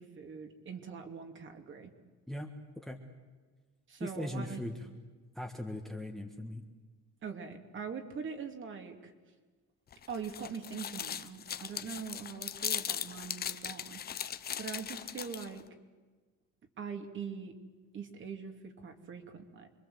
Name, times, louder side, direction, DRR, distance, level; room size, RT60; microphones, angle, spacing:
voice 1, 0.0-1.9 3.9-4.6 7.2-9.1 10.1-14.0 14.6-15.6 16.8-17.5 17.9-19.7, right 6 dB, 40° right, 5 dB, 2.6 m, -42 dB
voice 2, 4.0-4.9 5.3-6.6, left 1 dB, ahead, 4 dB, 1.5 m, -39 dB
sound 1, 9.9-15.6, left 9 dB, 30° left, 0.8 m, -39 dB
27.0 x 23.5 x 7.9 m, 1.4 s
cardioid pair, 170°, 31 cm